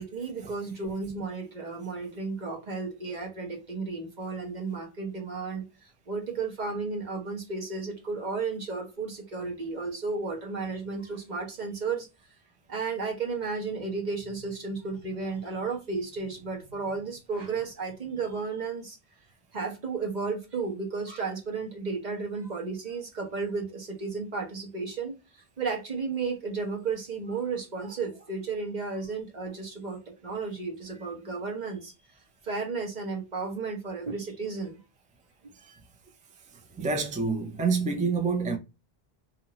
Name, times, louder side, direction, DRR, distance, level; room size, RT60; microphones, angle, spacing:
voice 1, 0.0-5.6 6.1-12.1 12.7-19.0 19.5-25.2 25.6-31.9 32.4-34.8, right 4 dB, 45° right, 1.2 m, -33 dB
voice 2, 36.8-38.6, right 4 dB, 15° right, 0.3 m, -27 dB
2.7 x 2.5 x 2.8 m
omnidirectional pair, 1.0 m